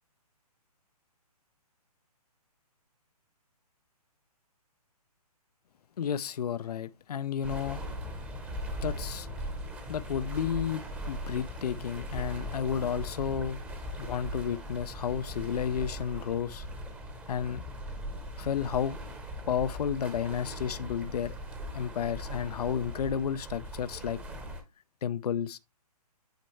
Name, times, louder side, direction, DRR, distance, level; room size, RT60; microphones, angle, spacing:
voice 1, 6.0-7.8 8.8-9.3 9.9-13.6 14.0-16.6 17.3-17.6 18.4-19.0 19.5-21.4 21.7-24.2 25.0-25.6, left 8 dB, 75° left, 0.5 m, -32 dB
sound 1, 7.4-24.6, equal, 5° right, 0.8 m, -39 dB
9.2 x 4.3 x 3.2 m
hypercardioid pair, 155°, 20 cm